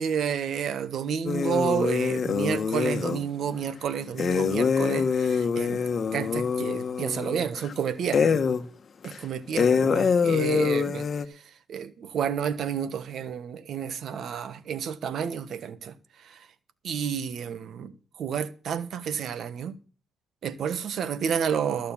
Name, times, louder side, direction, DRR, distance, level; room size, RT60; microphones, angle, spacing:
voice 1, 0.0-5.8 6.1-8.4 9.2-11.1 11.7-15.9 16.2-16.4 16.8-17.9 18.2-19.7 20.4-21.9, right 8 dB, 65° right, 1.3 m, -30 dB
sound 1, 1.3-3.2 4.2-7.7 8.1-8.7 9.0-9.1 9.6-11.3, left 6 dB, 45° left, 1.3 m, -25 dB
14.0 x 6.6 x 7.2 m
cardioid pair, 90°, 0 cm